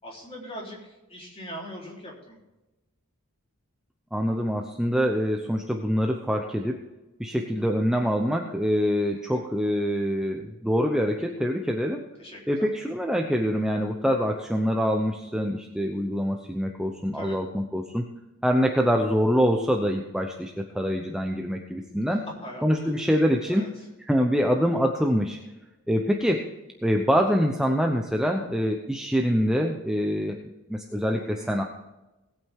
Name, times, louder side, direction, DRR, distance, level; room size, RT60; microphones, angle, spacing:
voice 1, 0.0-2.4 9.1-9.5 12.2-12.7 17.1-17.4 22.4-23.0 23.5-23.7 31.3-31.5, equal, 25° left, -3 dB, 3.8 m, -41 dB
voice 2, 4.1-6.8 7.2-12.0 12.5-18.1 18.4-22.2 22.6-23.7 24.1-25.4 25.9-26.4 26.8-30.4 30.7-31.6, equal, 5° right, 2 dB, 0.8 m, -25 dB
19.0 x 8.7 x 3.7 m, 1.0 s
head